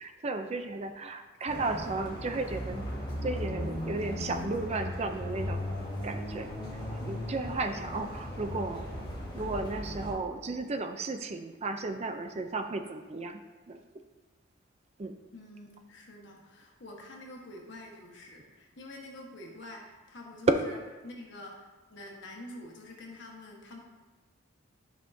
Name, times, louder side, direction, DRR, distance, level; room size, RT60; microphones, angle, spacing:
voice 1, 0.0-2.9 3.2-5.6 6.0-6.5 7.0-8.8 9.3-13.4 13.7-13.8 15.0-15.1, right 3 dB, 30° right, 7 dB, 0.4 m, -34 dB
sound 1, 1.5-10.1, left 1 dB, 20° left, 1.8 m, -37 dB
voice 2, 15.3-20.8 21.0-23.8, left 1 dB, 60° left, 0 dB, 1.3 m, -47 dB
11.5 x 5.6 x 2.7 m, 1.2 s
head